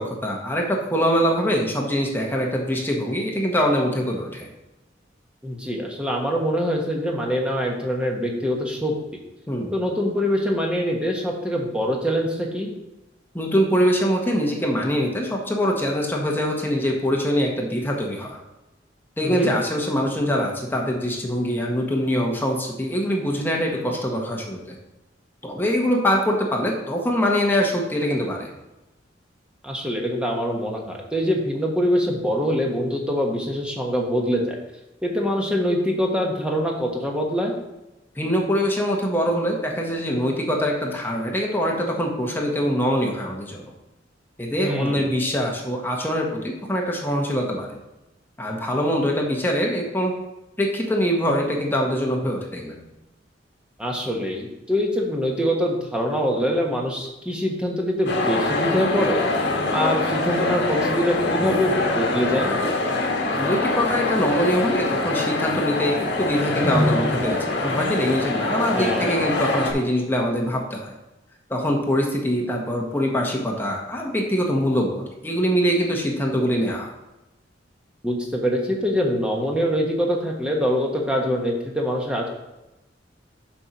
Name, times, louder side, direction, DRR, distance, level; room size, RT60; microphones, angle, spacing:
voice 1, 0.0-4.5 9.5-9.7 13.3-18.4 19.2-24.8 25.4-28.5 38.1-43.7 44.4-47.8 48.4-50.1 50.6-52.8 63.3-70.9 71.5-76.9, equal, 10° left, -1 dB, 1.2 m, -23 dB
voice 2, 5.4-8.9 9.7-12.7 19.2-19.5 29.6-34.6 35.0-37.5 44.6-45.0 53.8-59.2 59.7-62.5 68.7-69.2 78.0-82.3, equal, 5° right, -1 dB, 1.3 m, -24 dB
sound 1, 58.1-69.7, left 2 dB, 65° left, 1.8 m, -24 dB
7.1 x 4.5 x 5.9 m, 0.97 s
head